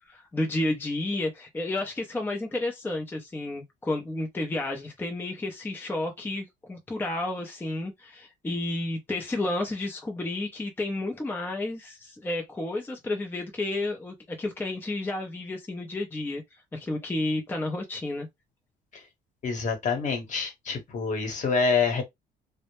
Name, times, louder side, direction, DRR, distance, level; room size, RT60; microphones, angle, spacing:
voice 1, 0.0-16.4 16.7-18.3, left 2 dB, 10° left, 0.5 m, -31 dB
voice 2, 19.4-22.0, left 5 dB, 45° left, 1.0 m, -26 dB
2.1 x 2.0 x 3.0 m
cardioid pair, 110°, 17 cm